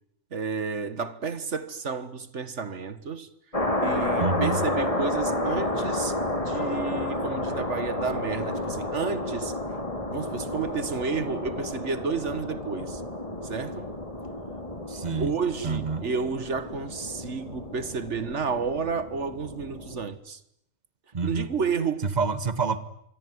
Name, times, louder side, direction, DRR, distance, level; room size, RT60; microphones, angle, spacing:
voice 1, 0.3-3.3 3.8-9.5 10.1-13.0 13.4-13.9 15.2-20.4 21.2-22.1, right 5 dB, 85° right, 1.9 m, -31 dB
sound 1, 3.5-20.1, left 1 dB, 30° left, 3.2 m, -31 dB
voice 2, 4.2-4.6 14.9-15.3 15.6-16.0 21.1-21.5 22.0-22.8, right 4 dB, 35° right, 1.7 m, -27 dB
26.0 x 24.0 x 9.6 m
omnidirectional pair, 1.2 m